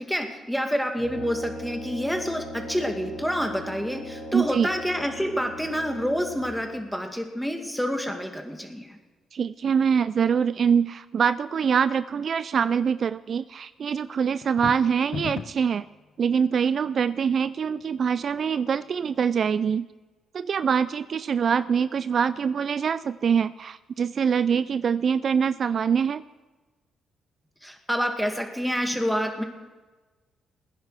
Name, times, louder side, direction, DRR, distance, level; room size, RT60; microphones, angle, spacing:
voice 1, 0.0-9.0 27.6-29.4, equal, ahead, 4 dB, 2.1 m, -28 dB
Brass instrument, 0.9-6.7, left 1 dB, 80° left, 6.3 m, -39 dB
voice 2, 4.3-4.7 9.3-15.9 16.2-19.9 20.3-26.2, right 7 dB, 50° right, 14 dB, 0.3 m, -24 dB
sound 1, 14.4-15.7, left 6 dB, 45° left, 0.5 m, -34 dB
20.0 x 10.0 x 4.9 m, 1.2 s
cardioid pair, 90°, 0 cm